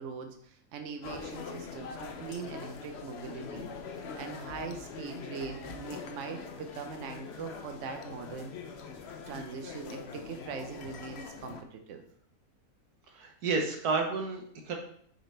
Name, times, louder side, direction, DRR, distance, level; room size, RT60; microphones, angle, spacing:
voice 1, 0.0-3.7 4.1-8.5 9.3-12.0, right 5 dB, 60° right, 6 dB, 1.1 m, -41 dB
sound 1, 1.0-11.6, left 5 dB, 60° left, 0.7 m, -43 dB
voice 2, 13.1-14.7, right 4 dB, 85° right, 2 dB, 1.6 m, -31 dB
6.0 x 5.2 x 3.3 m, 0.63 s
omnidirectional pair, 1.6 m